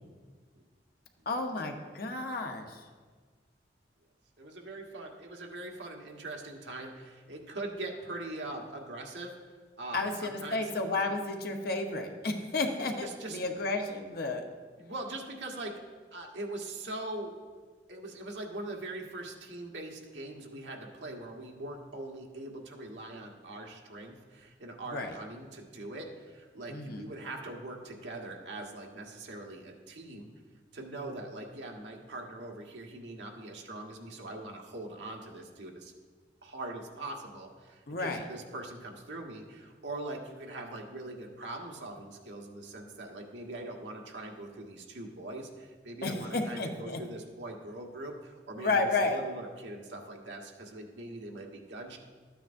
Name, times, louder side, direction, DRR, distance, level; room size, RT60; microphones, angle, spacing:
voice 1, 1.3-2.8 9.9-14.4 24.9-25.1 26.7-27.1 37.9-38.2 46.0-47.0 48.6-49.2, left 3 dB, 55° left, 4 dB, 1.0 m, -32 dB
voice 2, 4.4-9.3 9.8-10.7 11.0-11.2 13.0-13.4 14.8-15.8 16.1-17.3 17.9-30.3 30.7-35.9 36.4-52.0, right 2 dB, 85° right, 0 dB, 1.4 m, -42 dB
13.5 x 9.1 x 2.6 m, 1.5 s
head